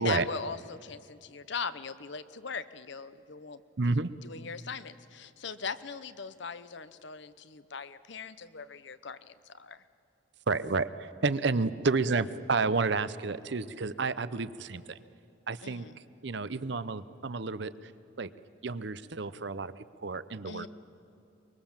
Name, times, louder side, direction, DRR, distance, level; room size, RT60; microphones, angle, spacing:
voice 1, 0.0-3.6 4.2-9.8 15.6-15.9 20.5-20.7, left 5 dB, 60° left, 14 dB, 0.8 m, -40 dB
voice 2, 3.8-4.1 10.5-15.0 15.5-15.9 16.2-17.9 18.2-18.3 18.6-20.7, right 3 dB, 55° right, 15 dB, 0.7 m, -30 dB
24.0 x 22.5 x 7.3 m, 2.6 s
head